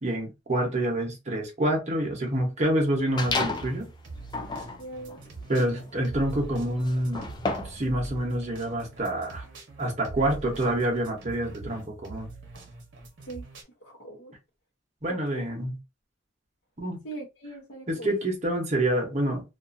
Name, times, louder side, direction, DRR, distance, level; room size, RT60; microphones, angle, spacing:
voice 1, 0.0-3.9 5.5-7.4 7.6-9.5 9.8-12.3 15.0-15.8 16.8-17.0 17.9-19.4, right 1 dB, 40° right, 0.9 m, -27 dB
sound 1, 3.1-13.6, right 2 dB, 75° right, 0.8 m, -43 dB
sound 2, 3.2-3.8 4.2-7.9, left 3 dB, 25° left, 0.3 m, -32 dB
voice 2, 4.8-5.2 13.3-13.4 13.8-14.3 15.3-15.4 17.0-18.1, right 2 dB, 70° left, 0.9 m, -40 dB
2.5 x 2.4 x 2.6 m
head